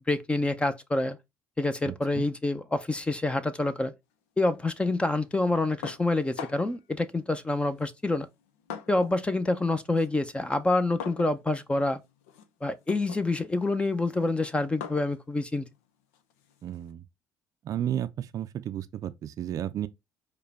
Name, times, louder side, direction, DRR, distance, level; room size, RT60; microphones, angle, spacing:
voice 1, 0.1-1.2 1.6-3.9 4.4-8.3 8.9-12.0 12.6-15.7, left 2 dB, 15° left, 0.6 m, -27 dB
voice 2, 1.8-2.2 16.6-17.0 17.6-19.9, right 10 dB, 55° right, 0.4 m, -33 dB
sound 1, 5.8-6.8 7.7-9.3 9.6-16.9, left 7 dB, 90° left, 0.6 m, -44 dB
4.9 x 2.3 x 4.1 m
supercardioid pair, 65°, 7 cm